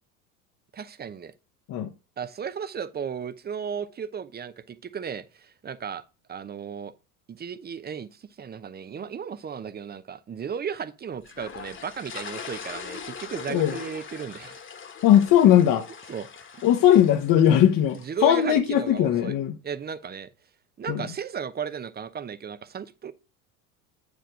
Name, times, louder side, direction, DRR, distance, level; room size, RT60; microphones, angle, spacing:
voice 1, 0.7-1.3 2.2-6.0 6.3-6.9 7.3-14.6 16.1-16.3 16.5-16.6 17.9-19.4 19.6-20.3 20.8-23.1, right 7 dB, 20° right, 0.7 m, -35 dB
sound 1, 11.3-18.5, left 6 dB, 25° left, 1.5 m, -41 dB
voice 2, 15.0-15.9 16.6-19.5 20.9-21.0, left 10 dB, 45° left, 1.2 m, -19 dB
8.8 x 5.2 x 4.8 m
hypercardioid pair, 80°, 44 cm